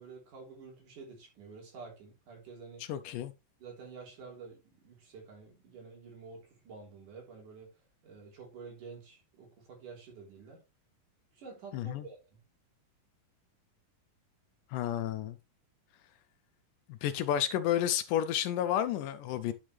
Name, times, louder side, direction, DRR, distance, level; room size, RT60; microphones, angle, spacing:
voice 1, 0.0-2.9 3.6-7.7 8.0-10.6 11.3-12.4, right 5 dB, 65° right, 4.7 m, -49 dB
voice 2, 2.8-3.3 11.7-12.1 14.7-15.4 16.9-19.5, left 11 dB, 80° left, 2.1 m, -31 dB
10.5 x 6.2 x 3.2 m
omnidirectional pair, 4.0 m